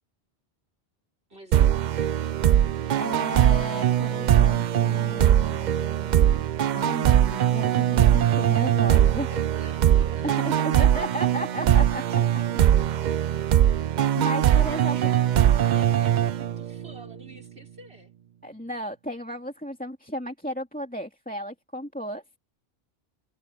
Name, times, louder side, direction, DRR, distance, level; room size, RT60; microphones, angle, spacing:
voice 1, 1.3-2.0 9.2-11.0 14.4-18.1, right 1 dB, 75° right, 5.6 m, -48 dB
sound 1, 1.5-17.0, right 10 dB, 55° right, 0.5 m, -21 dB
voice 2, 2.9-6.4 6.7-9.3 10.4-12.0 14.1-15.0 18.4-22.2, equal, 10° left, 2.3 m, -34 dB
omnidirectional pair, 1.1 m